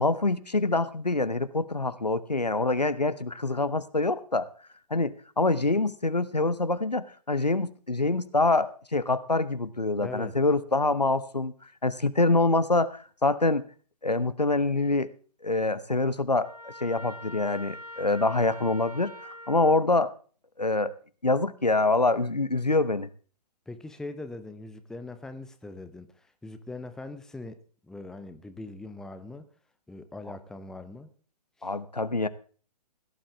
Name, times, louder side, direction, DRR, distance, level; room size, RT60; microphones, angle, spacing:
voice 1, 0.0-4.5 4.9-11.5 11.8-13.6 14.0-15.1 15.4-20.1 20.6-20.9 21.2-23.1 31.6-32.3, left 2 dB, 85° left, 1.0 m, -25 dB
voice 2, 10.0-10.4 23.7-27.6 27.9-29.5 29.9-31.1 31.6-31.7, left 2 dB, 5° left, 0.8 m, -41 dB
Trumpet, 16.4-19.8, equal, 70° right, 3.3 m, -44 dB
17.0 x 11.5 x 3.4 m
figure-of-eight pair, 125°, 20 cm